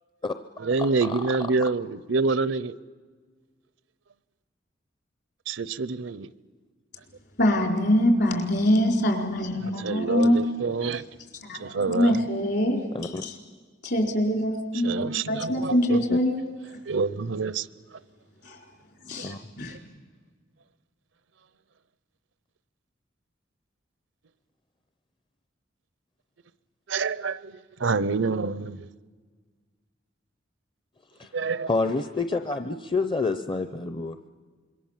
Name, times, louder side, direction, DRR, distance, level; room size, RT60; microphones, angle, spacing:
voice 1, 0.6-2.7 5.5-6.3 9.6-11.0 11.6-12.2 14.8-16.0 16.9-17.7 19.2-19.3 26.9-28.9 31.3-31.7, right 4 dB, 80° right, 0.7 m, -27 dB
voice 2, 7.4-10.4 11.4-11.6 11.9-13.3 13.8-16.4 18.4-18.6 19.1-19.8, left 1 dB, 60° left, 4.3 m, -24 dB
voice 3, 31.7-34.3, left 3 dB, 25° left, 0.7 m, -28 dB
26.5 x 22.5 x 7.4 m
head